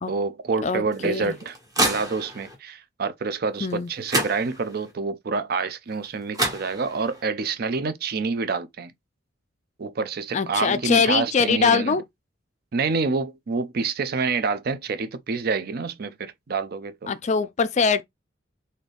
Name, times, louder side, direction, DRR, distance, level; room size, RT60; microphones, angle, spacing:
voice 1, 0.1-8.9 9.8-12.0 12.7-17.1, right 4 dB, 50° right, 0.5 m, -27 dB
voice 2, 0.6-1.4 3.6-3.9 10.3-12.0 17.1-18.0, left 5 dB, 35° left, 0.4 m, -22 dB
sound 1, 0.9-2.6 3.7-3.8 4.1-4.9 6.0-6.1 6.3-7.2, right 1 dB, 20° right, 1.2 m, -28 dB
3.8 x 2.7 x 3.4 m
head